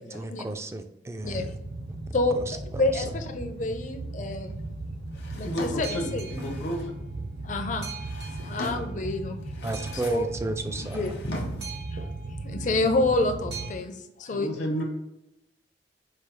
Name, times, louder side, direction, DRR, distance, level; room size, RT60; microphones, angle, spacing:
voice 1, 0.1-1.6 2.3-3.0 9.6-11.3, right 2 dB, 15° right, 7 dB, 0.3 m, -34 dB
Boat Water vehicle, 1.2-13.7, right 2 dB, 65° right, 0.8 m, -36 dB
voice 2, 2.1-4.6 5.4-6.3 7.4-7.9 8.4-9.4 10.1-10.3 10.9-11.6 11.9-12.0 12.4-14.5, left 2 dB, 45° left, 6 dB, 0.5 m, -28 dB
Drawer open or close, 5.1-7.0 7.8-9.0 9.4-10.3 10.6-11.8, left 2 dB, 65° left, 0.9 m, -41 dB
voice 3, 5.4-7.0 14.3-14.8, equal, 80° left, 0 dB, 1.0 m, -32 dB
4.8 x 2.0 x 4.5 m, 0.89 s
head